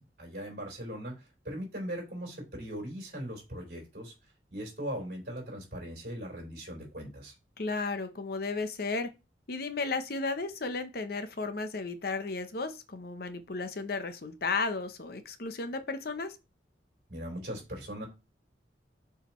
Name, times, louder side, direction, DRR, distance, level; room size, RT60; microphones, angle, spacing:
voice 1, 0.0-4.1 4.5-7.3 17.1-18.1, equal, 55° right, 3.9 m, -39 dB
voice 2, 7.6-9.1 9.5-16.4, left 3 dB, 55° left, 0.8 m, -34 dB
6.8 x 4.9 x 3.0 m
head